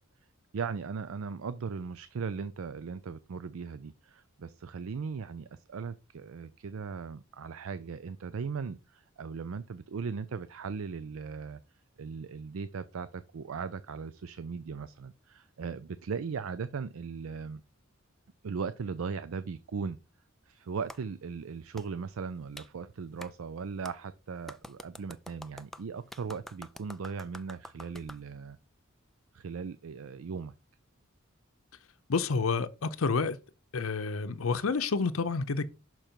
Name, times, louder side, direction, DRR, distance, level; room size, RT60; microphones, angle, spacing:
voice 1, 0.5-11.6 12.0-17.6 18.4-20.0 20.5-28.6 29.3-30.5, right 5 dB, 80° right, 0.4 m, -38 dB
Clapping, 20.9-21.0 21.8-21.9 22.6-22.7 23.2-23.3 23.8-24.0 24.5-28.2, left 1 dB, ahead, 0.3 m, -47 dB
voice 2, 32.1-33.4 33.7-35.6, left 4 dB, 80° left, 0.6 m, -29 dB
6.1 x 5.1 x 4.4 m
head